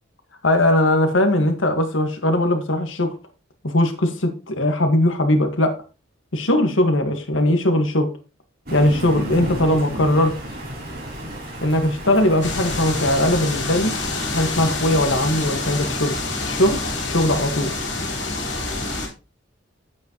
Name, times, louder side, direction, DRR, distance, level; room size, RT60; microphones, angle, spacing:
voice 1, 0.4-3.1 3.6-5.7 6.3-8.1 8.7-10.3 11.6-13.9 14.3-16.1 16.4-16.8 17.0-17.7, left 1 dB, 85° left, 6 dB, 1.7 m, -19 dB
Thunder, 8.6-13.3, equal, 55° right, 3.5 m, -32 dB
sound 1, 12.4-19.1, left 2 dB, 65° left, 3.4 m, -27 dB
9.5 x 8.3 x 3.0 m, 0.31 s
head